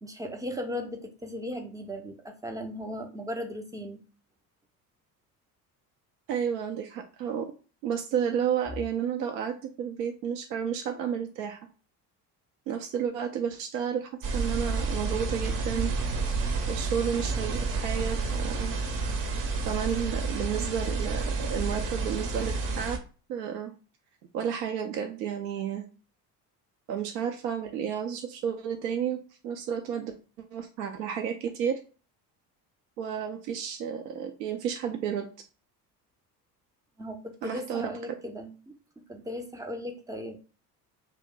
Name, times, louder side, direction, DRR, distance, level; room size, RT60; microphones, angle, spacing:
voice 1, 0.0-4.0 37.0-40.4, left 1 dB, 10° right, 4 dB, 0.4 m, -37 dB
voice 2, 6.3-7.5 7.8-11.6 12.7-15.9 16.7-18.7 19.6-23.0 23.3-23.7 24.3-25.9 26.9-30.1 30.5-31.8 33.0-35.2 37.4-37.9, right 8 dB, 75° right, 4 dB, 0.6 m, -31 dB
sound 1, 14.2-23.0, right 3 dB, 40° right, 0.7 m, -30 dB
2.6 x 2.0 x 3.6 m, 0.36 s
hypercardioid pair, 60°, 49 cm